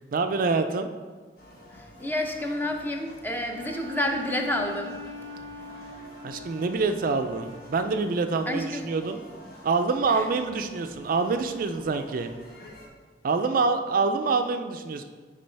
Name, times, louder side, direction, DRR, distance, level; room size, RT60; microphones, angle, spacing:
voice 1, 0.1-0.9 6.2-9.2 9.6-12.3 13.2-15.0, right 4 dB, 50° right, 7 dB, 0.4 m, -26 dB
sound 1, 1.4-12.9, equal, 55° left, 1.4 m, -49 dB
voice 2, 1.7-5.0 8.5-8.9 10.1-10.3 14.2-14.3, left 1 dB, 10° left, 3 dB, 0.6 m, -30 dB
Bowed string instrument, 3.4-8.1, left 1 dB, 40° left, 1.7 m, -42 dB
9.3 x 3.8 x 3.3 m, 1.4 s
head